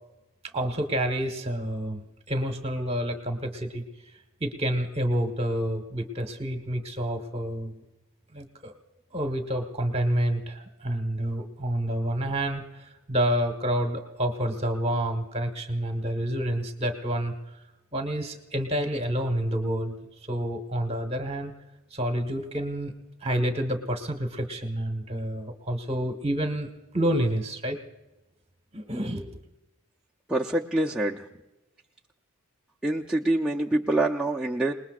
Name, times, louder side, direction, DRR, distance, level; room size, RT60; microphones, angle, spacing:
voice 1, 0.5-3.8 4.4-7.7 8.3-8.7 9.1-17.3 17.9-19.9 20.3-21.5 21.9-22.9 23.2-26.7 26.9-27.8 28.7-29.4, right 1 dB, 25° right, 6 dB, 1.3 m, -28 dB
voice 2, 30.3-31.2 32.8-34.7, right 1 dB, 5° right, -4 dB, 0.5 m, -25 dB
28.5 x 20.0 x 2.4 m, 1.0 s
head